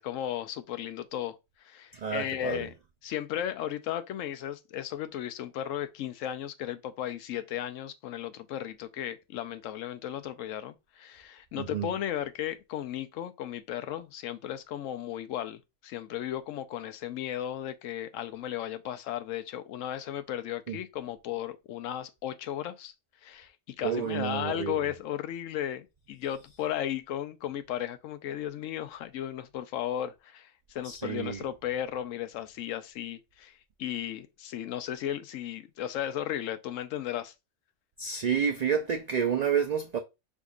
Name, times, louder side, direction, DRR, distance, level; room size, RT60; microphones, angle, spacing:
voice 1, 0.0-2.7 3.0-22.9 23.2-37.3, left 11 dB, 85° left, 1.0 m, -35 dB
voice 2, 1.9-2.7 11.6-11.9 20.7-20.8 23.8-24.8 30.8-31.4 38.0-40.0, right 7 dB, 80° right, 0.3 m, -29 dB
5.3 x 3.6 x 2.4 m
omnidirectional pair, 1.3 m